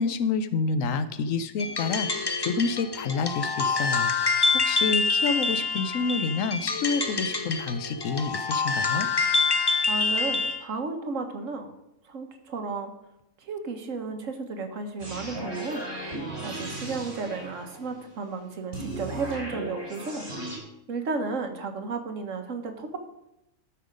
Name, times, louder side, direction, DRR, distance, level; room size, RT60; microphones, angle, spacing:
voice 1, 0.0-9.1, left 4 dB, 75° left, 12 dB, 1.1 m, -28 dB
sound 1, 1.6-10.6, left 4 dB, 30° left, 0.5 m, -26 dB
voice 2, 9.9-11.7 12.0-12.9 13.4-15.8 16.4-20.3 20.9-23.0, right 4 dB, 70° right, 6 dB, 1.5 m, -33 dB
sound 2, 15.0-18.0 18.7-20.6, right 2 dB, 50° right, 4.0 m, -36 dB
12.5 x 5.8 x 5.1 m, 0.87 s
omnidirectional pair, 1.4 m